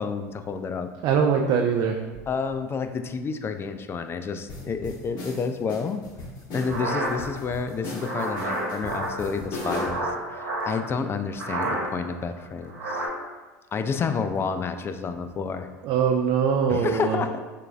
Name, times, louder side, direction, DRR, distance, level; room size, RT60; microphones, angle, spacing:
voice 1, 0.0-0.9 2.3-6.0 6.5-13.0 13.7-15.7 16.7-17.4, left 5 dB, 25° left, 9 dB, 0.3 m, -30 dB
voice 2, 1.0-2.0 15.8-17.2, right 6 dB, 50° right, 2 dB, 0.4 m, -22 dB
sound 1, 4.5-10.1, left 2 dB, 50° left, 1.2 m, -37 dB
sound 2, 6.6-10.9 11.3-12.1 12.4-13.1, right 1 dB, 80° right, 1.1 m, -30 dB
6.5 x 2.5 x 2.4 m, 1.3 s
hypercardioid pair, 90°, 10 cm